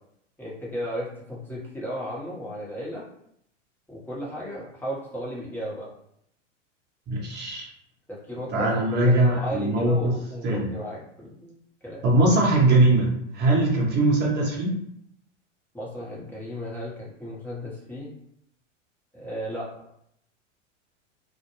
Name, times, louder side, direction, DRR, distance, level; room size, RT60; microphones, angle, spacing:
voice 1, 0.4-3.0 3.9-5.9 8.1-8.7 9.0-12.0 15.7-18.1 19.1-19.7, equal, 5° left, -6 dB, 0.9 m, -35 dB
voice 2, 7.1-7.7 8.5-10.1 10.4-10.7 12.0-14.8, right 2 dB, 30° right, -2 dB, 0.9 m, -21 dB
2.2 x 2.1 x 3.0 m, 0.73 s
hypercardioid pair, 100°, 37 cm